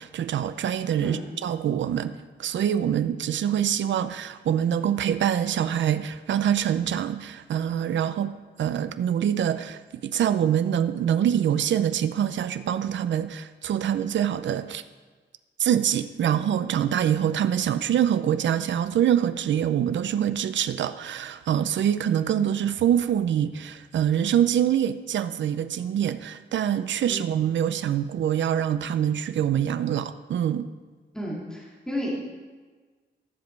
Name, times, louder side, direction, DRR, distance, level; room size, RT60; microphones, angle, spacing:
voice 1, 0.0-2.1 2.4-8.3 8.6-14.8 15.6-30.7, right 9 dB, 75° right, 12 dB, 0.5 m, -25 dB
voice 2, 31.1-32.1, equal, 5° left, -5 dB, 2.5 m, -33 dB
13.5 x 7.3 x 4.5 m, 1.4 s
wide cardioid pair, 120°, 19 cm